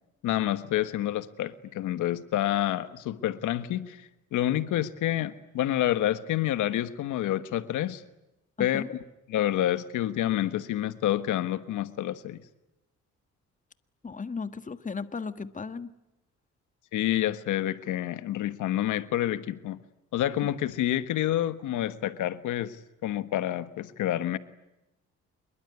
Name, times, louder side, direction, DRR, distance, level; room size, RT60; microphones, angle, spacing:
voice 1, 0.2-4.0 4.3-8.0 8.6-9.0 9.3-12.4 16.9-19.8 20.1-22.8 23.0-24.4, left 13 dB, 85° left, 13 dB, 1.4 m, -28 dB
voice 2, 8.6-8.9 14.0-15.9, left 5 dB, 25° left, 11 dB, 1.6 m, -35 dB
26.0 x 22.5 x 9.5 m, 0.94 s
cardioid pair, 90°, 30 cm